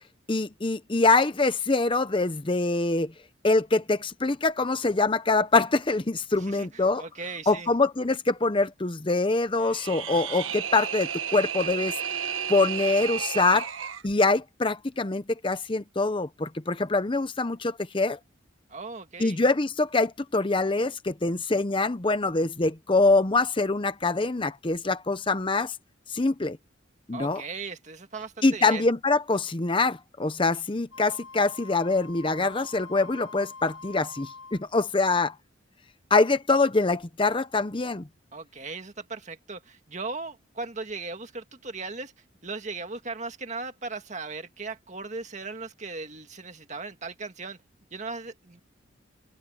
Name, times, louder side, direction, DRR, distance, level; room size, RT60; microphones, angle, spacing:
voice 1, 0.3-3.1 3.4-7.0 7.5-11.9 12.5-13.7 14.0-18.2 19.2-25.7 26.1-26.6 27.1-27.4 28.4-35.4 36.1-38.0, left 3 dB, 25° left, 0.7 m, -24 dB
voice 2, 6.4-7.7 18.7-19.4 27.1-28.9 38.3-42.1 42.4-47.6 47.9-48.6, right 3 dB, 35° right, 1.9 m, -37 dB
sound 1, 9.6-14.1, right 8 dB, 80° right, 1.4 m, -32 dB
Wind instrument woodwind instrument, 30.9-34.6, left 4 dB, 85° left, 7.4 m, -45 dB
head